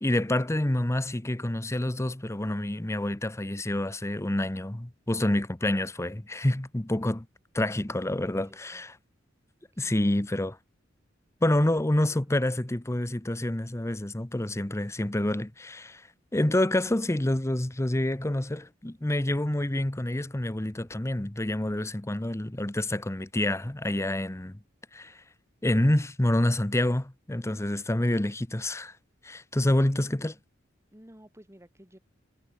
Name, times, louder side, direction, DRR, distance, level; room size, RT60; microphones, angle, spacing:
voice 1, 0.0-7.3 7.5-9.0 9.8-10.6 11.4-16.1 16.3-24.6 24.9-25.2 25.6-28.9 29.2-30.4, left 1 dB, 15° left, 0.8 m, -27 dB
voice 2, 7.6-8.8 9.7-10.1 11.8-12.5 30.9-32.0, equal, 15° right, 2.8 m, -55 dB
head